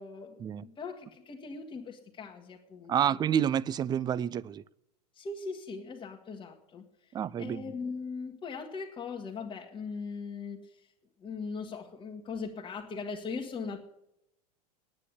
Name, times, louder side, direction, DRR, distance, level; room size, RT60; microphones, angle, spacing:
voice 1, 0.0-3.2 5.1-6.8 7.4-10.9 11.2-13.8, left 4 dB, 25° left, 1.6 m, -40 dB
voice 2, 2.9-4.6 7.1-7.6, right 9 dB, 20° right, 0.4 m, -29 dB
9.9 x 9.6 x 9.9 m
hypercardioid pair, 105°, 21 cm